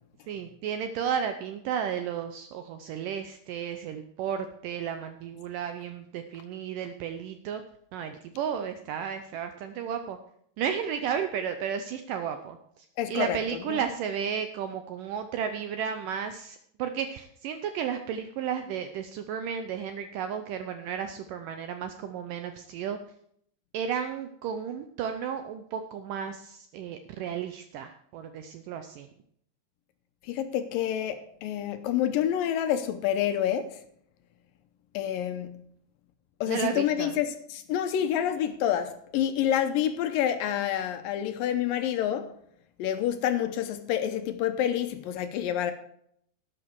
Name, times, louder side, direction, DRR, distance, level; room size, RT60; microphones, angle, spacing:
voice 1, 0.3-7.6 7.9-10.2 10.6-23.0 23.7-29.1 36.5-37.2, right 8 dB, 85° right, 1.9 m, -33 dB
voice 2, 13.0-13.4 13.7-13.8 30.2-33.8 34.9-35.7 36.4-42.3 42.8-45.7, left 10 dB, 75° left, 2.2 m, -28 dB
12.5 x 9.5 x 4.6 m
omnidirectional pair, 4.8 m